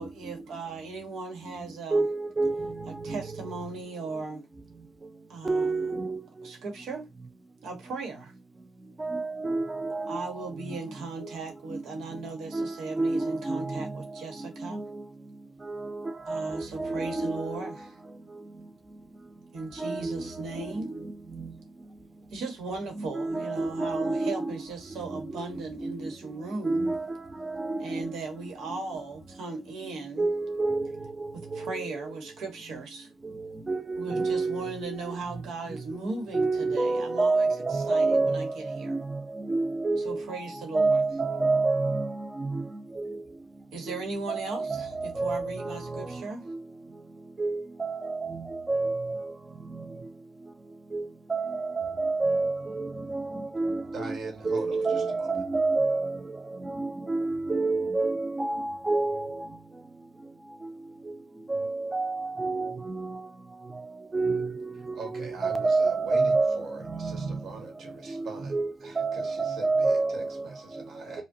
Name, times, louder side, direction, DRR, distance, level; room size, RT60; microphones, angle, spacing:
voice 1, 0.0-2.0 3.0-4.4 5.3-5.8 6.4-7.0 7.6-8.3 10.1-14.8 16.3-18.0 19.5-20.9 22.3-26.9 27.8-30.3 31.3-33.1 34.0-39.0 40.0-41.0 43.7-44.9 45.2-46.5 54.9-55.1, right 3 dB, 65° right, 1.3 m, -37 dB
voice 2, 1.9-3.2 5.4-6.5 9.0-10.3 11.7-11.8 12.5-14.0 14.4-15.0 15.7-17.7 19.8-21.0 21.3-21.5 23.0-24.6 25.1-26.1 26.6-28.1 30.2-30.9 31.2-32.1 33.2-35.2 35.7-40.4 40.7-42.7 42.9-43.2 43.9-44.0 44.3-46.6 47.4-49.3 49.7-49.8 50.9-51.0 51.3-59.5 61.5-63.3 64.1-67.4 68.1-70.5 70.7-70.8, right 3 dB, 15° right, 0.5 m, -29 dB
voice 3, 53.9-55.3 64.9-71.2, right 3 dB, 45° right, 1.6 m, -43 dB
5.0 x 2.2 x 2.7 m
cardioid pair, 145°, 0 cm